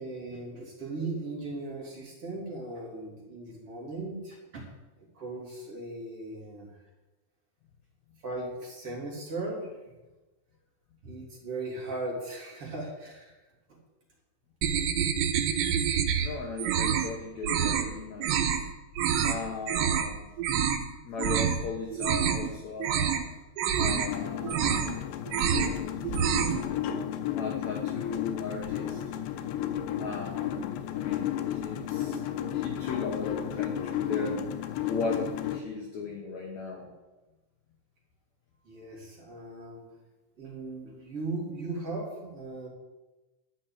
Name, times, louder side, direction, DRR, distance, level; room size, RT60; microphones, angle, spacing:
voice 1, 0.0-4.7 5.1-6.8 8.2-9.7 11.0-13.4 38.6-39.8 40.4-42.7, right 2 dB, 35° right, -4 dB, 3.8 m, -38 dB
sound 1, 14.6-16.3 16.6-17.1 17.4-17.9 18.2-18.6 19.0-19.4 19.7-20.1 20.4-20.8 21.2-21.6 21.9-22.5 22.8-23.2 23.6-24.1 24.4-25.0 25.3-25.8 26.0-26.6, right 8 dB, 85° right, 3.2 m, -27 dB
voice 2, 16.2-18.4 19.2-20.3 21.0-23.1 23.8-25.0 27.4-29.0 30.0-32.2 32.5-36.9, left 4 dB, 60° left, 0 dB, 2.0 m, -37 dB
sound 2, 23.9-35.6, left 10 dB, 85° left, 3.1 m, -33 dB
11.5 x 6.4 x 8.9 m, 1.1 s
omnidirectional pair, 5.0 m